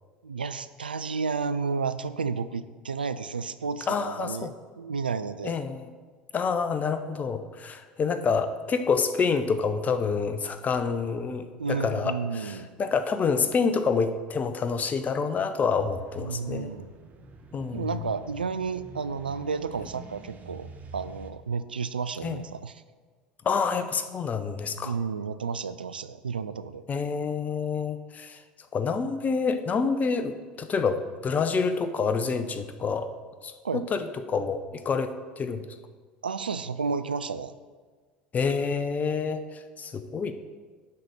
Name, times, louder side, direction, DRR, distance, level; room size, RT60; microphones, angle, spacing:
voice 1, 0.2-5.6 11.6-12.7 16.2-16.9 17.7-20.7 20.9-22.8 24.8-26.8 33.6-33.8 36.2-37.5, right 5 dB, 85° right, 12 dB, 0.3 m, -32 dB
voice 2, 3.9-4.5 5.4-5.8 6.3-16.7 17.5-17.9 22.2-22.4 23.4-25.0 26.9-28.4 28.7-33.1 33.4-35.6 38.3-40.3, left 5 dB, 30° left, 10 dB, 0.7 m, -28 dB
sound 1, 15.8-21.3, right 3 dB, 35° right, 1.1 m, -47 dB
10.5 x 4.1 x 6.5 m, 1.4 s
figure-of-eight pair, 65°, 5 cm